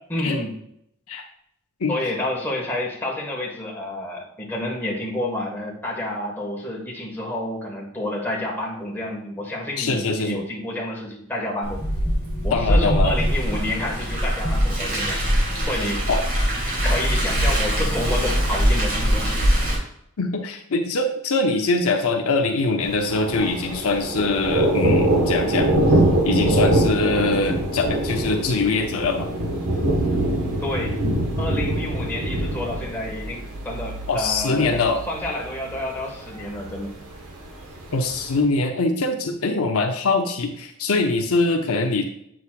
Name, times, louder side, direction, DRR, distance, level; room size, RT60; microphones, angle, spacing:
voice 1, 0.1-0.5 1.9-11.8 12.4-15.2 15.6-16.1 16.8-19.4 30.6-31.0 31.4-36.9, left 1 dB, 10° left, -3 dB, 1.7 m, -29 dB
voice 2, 9.8-10.4 12.5-13.1 16.1-16.2 20.2-25.7 26.2-29.3 34.1-35.0 37.9-42.0, left 3 dB, 70° left, 3 dB, 0.7 m, -23 dB
Car, 11.6-19.8, equal, 40° right, 2.9 m, -22 dB
Thunder, 22.8-38.4, right 1 dB, 70° right, 1.5 m, -24 dB
8.3 x 6.2 x 2.5 m, 0.73 s
head